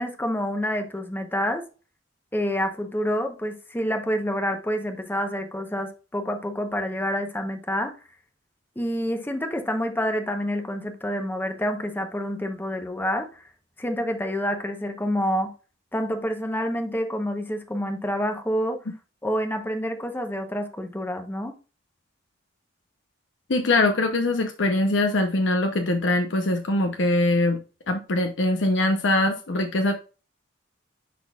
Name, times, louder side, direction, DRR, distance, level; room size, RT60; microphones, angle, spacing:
voice 1, 0.0-1.6 2.3-7.9 8.8-13.4 13.8-15.5 15.9-18.8 19.2-21.5, equal, 10° left, 0.9 m, -28 dB
voice 2, 23.5-27.6 27.9-29.9, left 2 dB, 75° left, 0.8 m, -22 dB
10.0 x 4.0 x 2.4 m
head